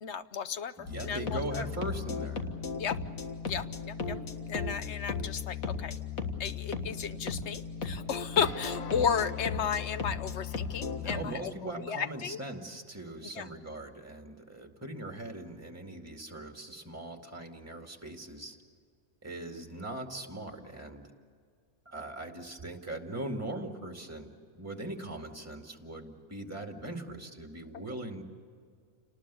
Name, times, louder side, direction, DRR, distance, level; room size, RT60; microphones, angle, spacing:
voice 1, 0.0-1.6 2.7-3.0 3.5-4.2 4.5-5.9 6.4-11.5 11.9-12.4 13.4-13.5, left 7 dB, 60° left, 12 dB, 1.0 m, -33 dB
voice 2, 0.8-2.4 10.9-18.6 19.2-21.1 21.9-24.3 24.5-28.2, right 1 dB, 10° right, 3 dB, 2.2 m, -40 dB
sound 1, 0.9-11.2, left 5 dB, 85° left, 2.0 m, -36 dB
29.0 x 19.5 x 7.0 m, 2.1 s
omnidirectional pair, 1.4 m